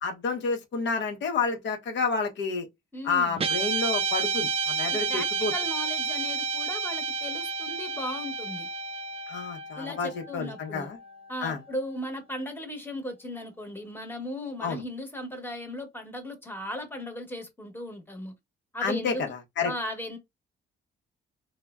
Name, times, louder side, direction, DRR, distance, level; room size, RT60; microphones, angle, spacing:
voice 1, 0.0-2.7 3.0-5.5 9.3-11.0 11.4-11.6 14.6-14.8 18.8-19.7, left 4 dB, 65° left, 0.8 m, -29 dB
voice 2, 2.9-3.4 4.9-8.7 9.8-10.9 11.3-18.3 18.7-19.2 19.6-20.2, left 1 dB, 10° left, 1.0 m, -37 dB
Guitar, 3.4-11.8, right 5 dB, 30° right, 0.4 m, -31 dB
3.2 x 2.1 x 2.3 m
cardioid pair, 90°, 20 cm